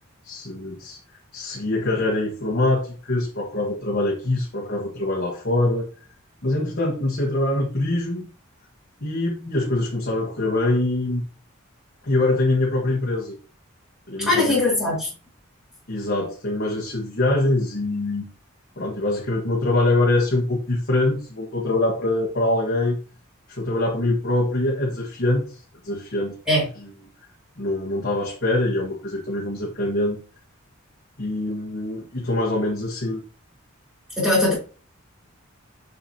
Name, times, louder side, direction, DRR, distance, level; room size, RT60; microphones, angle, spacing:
voice 1, 0.2-6.1 6.4-8.3 9.0-11.2 12.0-13.4 14.1-14.6 15.9-18.2 18.8-23.0 23.5-26.4 26.8-26.9 27.6-30.2 31.2-33.2, left 2 dB, 50° left, -3 dB, 1.4 m, -24 dB
voice 2, 14.2-15.1 26.5-26.7 34.2-34.5, left 2 dB, 5° right, -6 dB, 3.6 m, -20 dB
6.8 x 5.8 x 2.9 m, 0.36 s
head